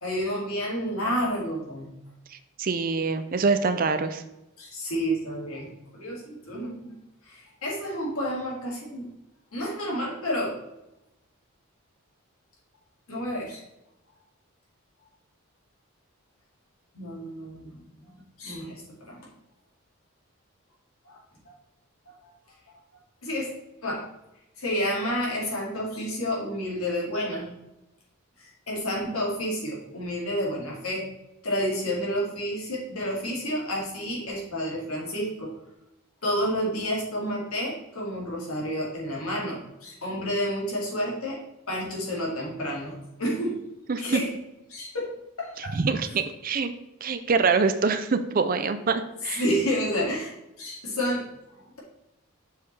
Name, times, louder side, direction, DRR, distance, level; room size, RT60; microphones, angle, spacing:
voice 1, 0.0-1.9 4.6-6.9 7.3-9.1 9.5-10.6 13.1-13.6 16.9-19.2 21.0-21.2 22.2-22.3 23.2-23.5 23.8-24.0 24.6-27.5 28.4-31.1 31.4-35.5 36.2-41.4 41.7-43.6 44.0-44.3 44.7-45.1 45.4-45.8 49.4-51.3, equal, 80° left, -3 dB, 2.4 m, -30 dB
voice 2, 2.3-4.2 43.9-44.2 45.7-46.7 47.0-49.4, right 4 dB, 40° right, 10 dB, 0.4 m, -25 dB
6.5 x 5.4 x 3.3 m, 0.91 s
head